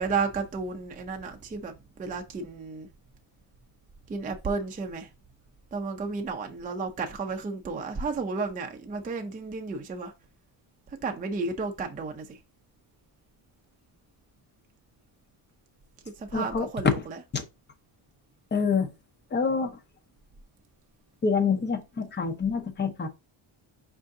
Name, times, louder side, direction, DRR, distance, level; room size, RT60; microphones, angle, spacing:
voice 1, 0.0-2.9 4.1-5.1 5.7-10.1 11.0-12.4 16.2-17.2, right 4 dB, 20° right, 0.4 m, -32 dB
voice 2, 16.3-16.7 17.3-17.4 18.5-18.9 19.3-19.7 21.2-23.1, left 5 dB, 20° left, 0.6 m, -26 dB
5.5 x 2.6 x 3.5 m
wide cardioid pair, 175°, 50 cm